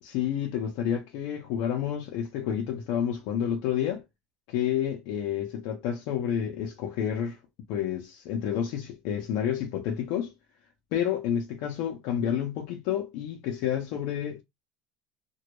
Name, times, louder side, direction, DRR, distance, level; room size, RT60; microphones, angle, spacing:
voice 1, 0.0-4.0 4.5-7.4 7.7-10.3 10.9-14.4, left 9 dB, 75° left, 0.5 m, -29 dB
2.2 x 2.0 x 2.9 m
supercardioid pair, 95°, 0 cm